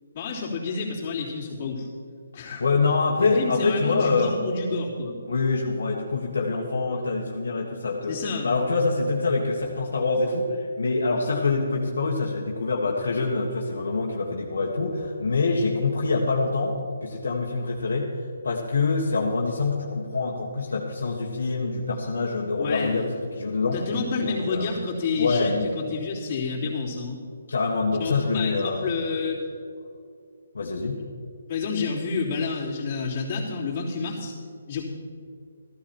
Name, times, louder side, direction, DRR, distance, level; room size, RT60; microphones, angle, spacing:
voice 1, 0.1-1.9 2.3-2.6 3.2-5.2 8.1-8.5 22.6-23.1 23.7-27.2 28.0-29.4 31.5-34.3 34.7-34.8, left 4 dB, 35° left, -6 dB, 3.3 m, -29 dB
voice 2, 2.4-4.3 5.3-8.2 8.4-16.8 17.0-18.1 18.4-23.8 24.2-24.7 25.2-25.5 27.5-28.9 30.5-31.0, left 3 dB, 75° left, -2 dB, 1.6 m, -25 dB
14.0 x 12.5 x 4.5 m, 2.4 s
hypercardioid pair, 155°, 0 cm